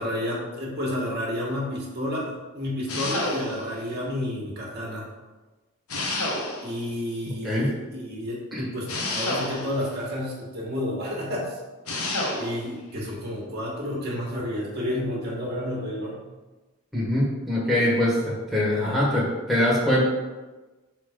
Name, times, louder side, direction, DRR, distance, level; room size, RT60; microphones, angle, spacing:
voice 1, 0.0-5.0 6.6-11.6 12.3-16.2 17.7-17.9 18.7-19.0, left 1 dB, 45° right, -3 dB, 1.5 m, -31 dB
sound 1, 2.9-3.8 5.9-6.9 8.9-9.9 11.9-12.6, left 2 dB, 85° left, 1.1 m, -29 dB
voice 2, 16.9-20.1, left 1 dB, ahead, -7 dB, 1.4 m, -23 dB
5.6 x 3.8 x 5.0 m, 1.2 s
head